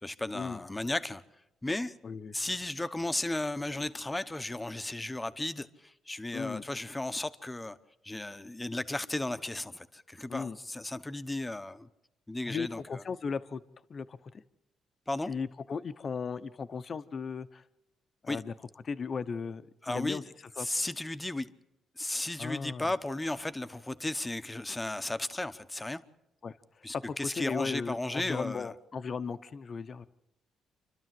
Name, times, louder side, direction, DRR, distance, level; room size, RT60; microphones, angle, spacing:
voice 1, 0.0-1.2 1.6-1.9 2.3-7.8 8.0-11.9 12.3-13.0 15.1-15.3 18.3-18.4 19.8-20.2 20.6-21.5 22.0-26.0 26.8-28.7, left 2 dB, 15° left, 1.0 m, -35 dB
voice 2, 2.0-2.3 6.3-6.6 10.3-10.6 12.5-13.6 13.9-14.3 15.3-17.6 18.2-18.5 18.8-20.2 20.6-20.7 22.4-22.9 26.4-26.5 27.1-30.1, left 5 dB, 45° left, 0.9 m, -36 dB
28.5 x 12.5 x 7.7 m
cardioid pair, 90°, 0 cm